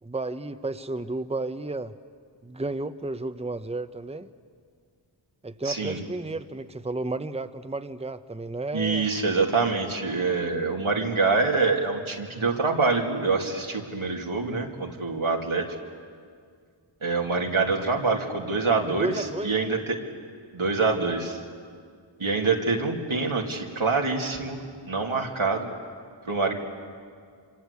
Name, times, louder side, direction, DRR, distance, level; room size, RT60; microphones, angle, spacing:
voice 1, 0.0-1.9 2.4-4.3 5.4-9.1 18.9-19.7, right 2 dB, 15° right, 10 dB, 0.8 m, -32 dB
voice 2, 5.6-6.0 8.7-15.6 17.0-20.0 20.5-21.4 22.2-24.6 24.8-25.7 26.2-26.5, right 4 dB, 85° right, 1 dB, 2.7 m, -25 dB
26.5 x 25.5 x 8.3 m, 2.1 s
wide cardioid pair, 50°, 47 cm